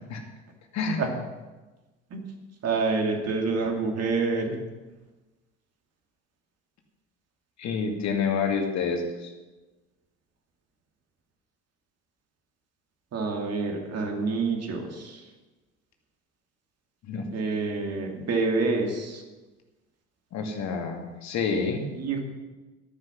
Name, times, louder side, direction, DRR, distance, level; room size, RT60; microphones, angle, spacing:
voice 1, 2.6-4.5 13.1-15.2 17.3-19.2 22.0-22.2, right 4 dB, 45° right, 2 dB, 2.6 m, -27 dB
voice 2, 7.6-9.3 17.0-17.3 20.3-21.8, left 5 dB, 50° left, 3 dB, 2.2 m, -28 dB
13.5 x 9.7 x 6.0 m, 1.2 s
figure-of-eight pair, 55°, 35 cm